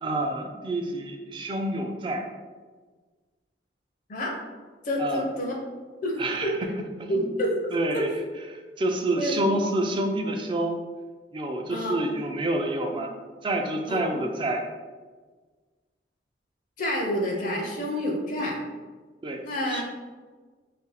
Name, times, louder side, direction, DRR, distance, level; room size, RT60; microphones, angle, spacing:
voice 1, 0.0-2.3 5.0-5.3 6.2-6.5 7.0-7.3 7.7-8.1 8.5-10.8 11.3-13.1 13.4-14.7 19.2-19.4 19.7-19.8, right 1 dB, 30° right, 3 dB, 0.3 m, -28 dB
voice 2, 4.8-5.5 6.0-6.5 7.1-7.5 7.9-8.0 9.2-9.4 11.7-11.9 13.9-14.0 16.8-18.6 19.4-19.8, equal, 45° left, 0 dB, 0.5 m, -28 dB
2.6 x 2.3 x 3.9 m, 1.4 s
head